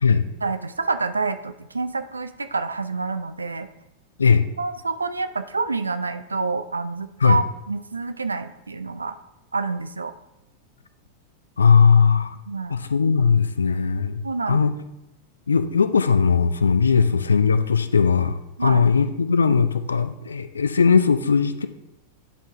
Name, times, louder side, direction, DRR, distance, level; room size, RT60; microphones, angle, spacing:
voice 1, 0.4-3.7 4.6-9.2 9.5-10.1 12.5-12.8 14.2-14.7 17.0-17.1 18.6-18.8, right 4 dB, 80° right, 10 dB, 0.4 m, -28 dB
voice 2, 11.6-12.4 12.7-14.7 15.5-21.7, left 5 dB, 75° left, 11 dB, 0.4 m, -19 dB
9.9 x 3.9 x 3.6 m, 0.92 s
figure-of-eight pair, 90°, 0 cm